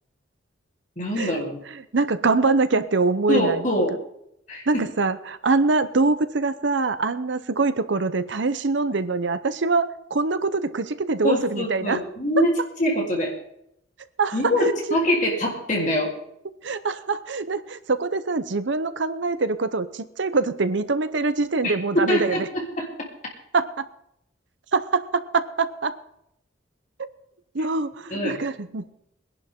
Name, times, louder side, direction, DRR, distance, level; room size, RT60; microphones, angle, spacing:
voice 1, 1.0-1.6 3.3-4.0 4.5-4.9 11.2-13.3 14.3-16.1 21.6-22.9 28.1-28.4, equal, 40° left, -1 dB, 3.4 m, -24 dB
voice 2, 1.9-3.6 4.7-12.0 14.2-14.4 16.6-22.5 23.5-23.8 24.7-25.9 27.5-28.9, right 3 dB, 70° right, 12 dB, 0.8 m, -24 dB
21.5 x 11.0 x 3.7 m, 0.77 s
head